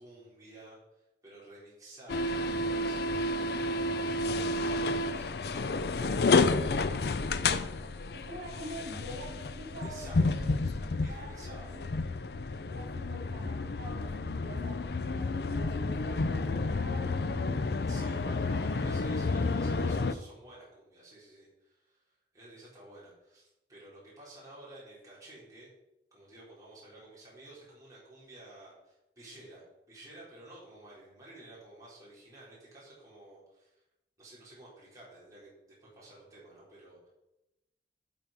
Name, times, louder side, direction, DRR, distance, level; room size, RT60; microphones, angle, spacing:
voice 1, 0.0-4.0 4.2-7.7 9.8-10.5 11.0-11.7 17.9-25.7 26.1-33.8 34.2-35.5 35.8-37.1, right 2 dB, 20° right, -7 dB, 4.4 m, -52 dB
sound 1, 2.1-20.1, left 3 dB, 65° left, 0.5 m, -30 dB
voice 2, 8.1-10.3 10.9-12.0 12.7-17.6 18.0-18.5, right 1 dB, 80° right, -1 dB, 2.8 m, -46 dB
11.5 x 6.1 x 5.3 m, 0.95 s
head